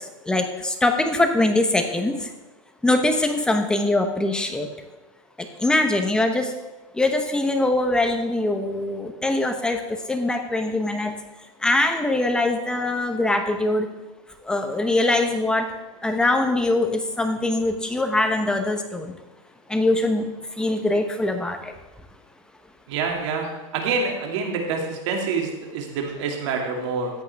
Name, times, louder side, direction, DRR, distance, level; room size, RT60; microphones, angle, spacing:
voice 1, 0.0-2.3 2.8-4.7 5.6-6.5 6.9-11.1 11.6-13.9 14.4-15.7 16.0-19.1 19.7-20.3 20.6-21.7, left 2 dB, 5° left, 5 dB, 0.9 m, -22 dB
voice 2, 22.9-23.5 23.7-27.1, right 4 dB, 55° right, 1 dB, 2.4 m, -26 dB
14.0 x 8.3 x 3.5 m, 1.1 s
supercardioid pair, 145°, 18 cm